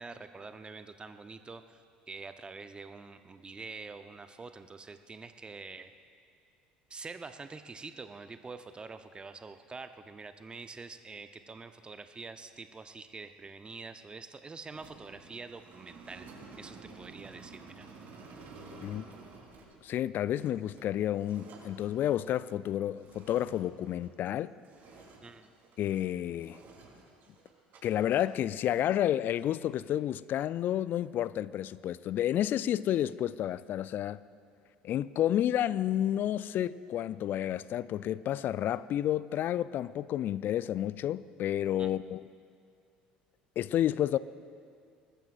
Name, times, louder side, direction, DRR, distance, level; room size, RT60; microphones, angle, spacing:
voice 1, 0.0-1.8 2.1-5.9 6.9-16.3 16.6-17.9 25.2-25.5 41.8-41.9, right 4 dB, 20° right, 0.8 m, -46 dB
sound 1, 14.7-24.4 24.6-26.1 26.4-27.8 28.0-28.3, right 3 dB, 50° right, 3.9 m, -52 dB
voice 2, 19.8-24.5 25.8-26.6 27.8-34.2 34.8-42.2 43.6-44.2, left 11 dB, 45° left, 0.4 m, -30 dB
23.5 x 19.5 x 2.5 m
figure-of-eight pair, 60°, 4 cm